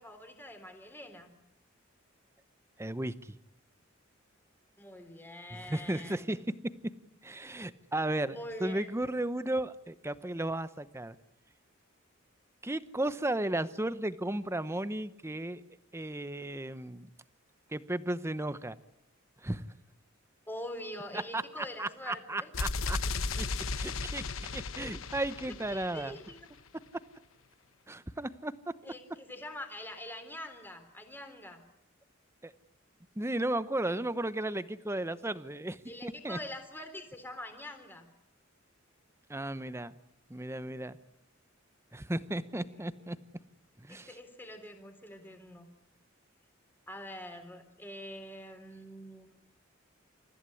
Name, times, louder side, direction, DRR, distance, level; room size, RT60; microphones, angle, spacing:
voice 1, 0.0-1.4 4.8-6.4 8.4-9.0 20.5-22.5 25.7-26.4 28.8-31.6 35.9-38.1 42.7-42.8 43.9-45.7 46.9-49.3, left 1 dB, 10° left, 6 dB, 3.6 m, -44 dB
voice 2, 2.8-3.1 5.5-6.4 7.2-11.2 12.6-15.6 15.9-17.1 17.7-18.8 19.4-19.6 21.1-23.5 23.8-26.2 27.9-28.7 32.4-32.5 33.2-36.4 39.3-39.9 40.3-41.0 41.9-43.2 43.8-44.1, right 1 dB, 15° right, 14 dB, 0.9 m, -35 dB
sound 1, 22.5-26.4, left 4 dB, 90° left, 1.0 m, -35 dB
29.0 x 15.0 x 9.8 m, 0.81 s
head